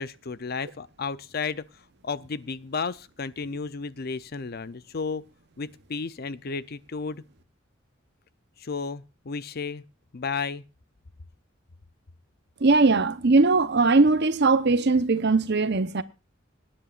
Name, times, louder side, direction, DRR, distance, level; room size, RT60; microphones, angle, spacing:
voice 1, 0.0-1.7 2.0-5.2 5.6-7.2 8.6-9.8 10.1-10.6, left 5 dB, 50° left, 0.6 m, -33 dB
voice 2, 12.6-16.0, right 3 dB, 60° right, 0.9 m, -20 dB
26.0 x 9.9 x 2.5 m
head